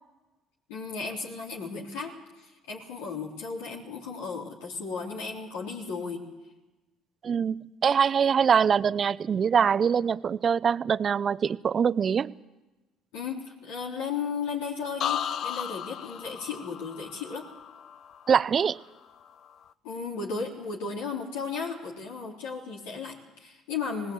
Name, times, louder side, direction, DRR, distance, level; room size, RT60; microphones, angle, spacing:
voice 1, 0.7-6.3 13.1-17.5 19.8-24.1, left 5 dB, 80° left, 3.6 m, -35 dB
voice 2, 7.2-12.3 18.3-18.8, right 7 dB, 45° right, 0.6 m, -24 dB
sound 1, 15.0-18.8 19.2-19.7, left 9 dB, 55° left, 0.8 m, -35 dB
19.5 x 19.0 x 8.3 m
hypercardioid pair, 65°, 0 cm